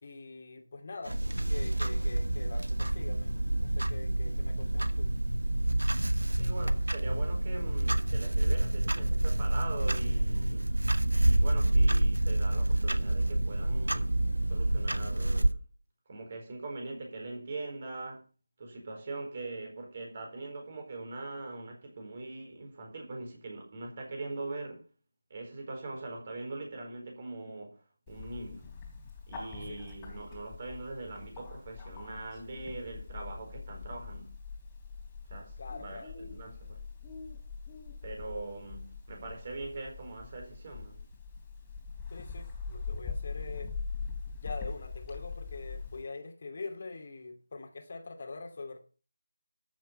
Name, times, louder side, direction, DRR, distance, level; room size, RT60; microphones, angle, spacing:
voice 1, 0.0-1.2 1.5-5.1 10.0-10.1 29.7-29.8 35.6-36.1 42.1-43.7 44.4-48.8, left 3 dB, 40° left, 2.5 m, -44 dB
Clock, 1.1-15.5, right 1 dB, 80° right, 1.2 m, -28 dB
voice 2, 6.4-10.7 11.0-14.1 14.5-15.6 16.1-18.2 18.6-24.8 25.3-27.8 28.1-28.7 29.3-34.3 35.3-36.8 38.0-41.0, right 2 dB, 35° right, 4.4 m, -42 dB
Bird, 28.1-46.0, left 5 dB, 10° left, 3.2 m, -42 dB
13.5 x 7.3 x 5.4 m
figure-of-eight pair, 165°, 0 cm